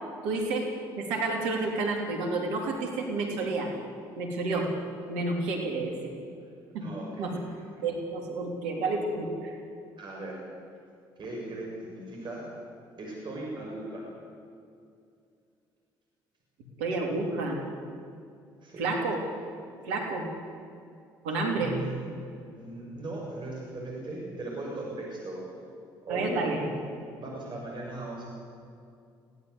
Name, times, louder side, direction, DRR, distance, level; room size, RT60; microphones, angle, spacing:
voice 1, 0.2-0.7 1.0-3.7 4.2-4.7 5.1-6.1 6.7-6.9 7.2-7.3 7.8-9.5 16.8-17.6 18.8-19.2 19.9-20.3 21.2-21.8 26.1-26.6, right 3 dB, 75° right, 1 dB, 3.5 m, -30 dB
voice 2, 6.8-7.3 10.0-10.4 11.2-12.4 13.0-14.0 18.6-18.9 21.5-22.0 22.3-25.4 26.0-26.7 27.2-28.3, right 2 dB, 45° right, -2 dB, 6.9 m, -38 dB
22.0 x 16.5 x 8.2 m, 2.4 s
hypercardioid pair, 55°, 11 cm